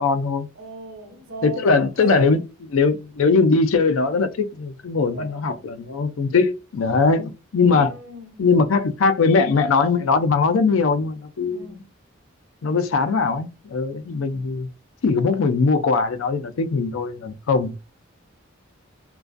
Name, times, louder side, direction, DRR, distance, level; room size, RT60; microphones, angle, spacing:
voice 1, 0.0-0.5 1.4-2.4 2.7-7.9 8.4-11.8 12.6-14.7 15.0-17.7, left 4 dB, 80° left, 0.4 m, -20 dB
voice 2, 0.6-2.4 5.1-5.7 7.7-8.5 11.5-11.9, right 1 dB, 75° right, 0.8 m, -38 dB
2.4 x 2.2 x 2.4 m
head